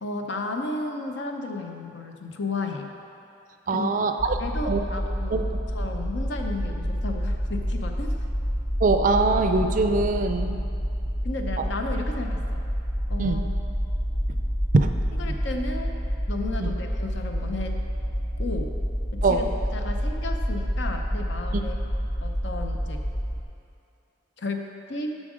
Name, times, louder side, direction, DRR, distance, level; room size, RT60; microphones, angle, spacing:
voice 1, 0.0-2.9 3.7-3.9 4.4-8.1 11.2-12.6 13.1-13.4 15.1-16.0 16.3-17.8 18.4-18.7 19.1-19.5 19.7-21.8 22.2-23.0 24.4-25.1, left 2 dB, 60° left, 3 dB, 0.7 m, -33 dB
voice 2, 3.7-4.4 4.7-4.8 5.3-5.4 8.8-10.6 13.2-13.5 14.7-14.9 16.6-16.7 19.2-19.5, right 3 dB, 40° right, 7 dB, 0.4 m, -22 dB
sound 1, 4.2-23.4, equal, 45° left, 1.5 m, -28 dB
7.4 x 6.3 x 4.9 m, 2.6 s
head